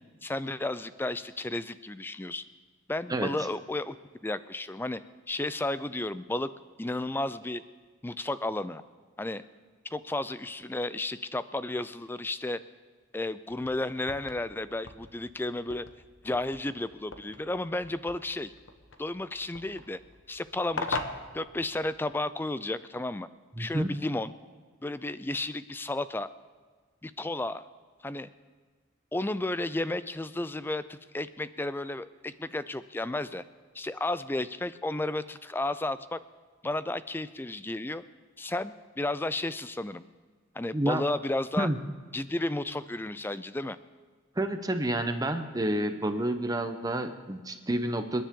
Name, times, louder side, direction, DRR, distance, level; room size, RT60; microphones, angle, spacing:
voice 1, 0.2-2.4 2.9-4.0 4.2-5.0 5.3-6.5 6.8-7.6 8.0-8.8 9.2-9.4 9.9-12.6 13.1-15.9 16.2-18.5 19.0-20.0 20.3-21.0 21.3-23.3 23.6-24.3 24.8-26.3 27.0-27.6 28.0-28.3 29.1-33.4 33.7-36.2 36.6-38.0 38.4-40.0 40.5-41.7 42.1-43.8, left 2 dB, 10° left, 14 dB, 0.4 m, -33 dB
sound 1, 13.5-22.2, left 3 dB, 65° left, 1.1 m, -42 dB
voice 2, 23.6-24.0 40.7-41.0 41.6-41.8 44.4-48.2, right 1 dB, 20° right, 8 dB, 0.8 m, -29 dB
28.0 x 10.0 x 3.7 m, 1.5 s
head